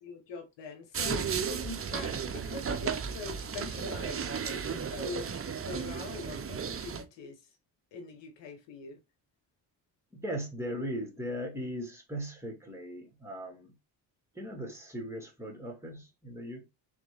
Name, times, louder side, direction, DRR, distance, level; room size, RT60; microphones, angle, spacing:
voice 1, 0.0-7.3 7.9-9.0, left 4 dB, 80° left, 1.2 m, -43 dB
sound 1, 0.9-7.0, right 6 dB, 30° right, 0.7 m, -34 dB
voice 2, 10.1-13.7 14.3-16.6, equal, 5° right, 2.2 m, -38 dB
3.6 x 3.6 x 3.3 m
supercardioid pair, 70°, 43 cm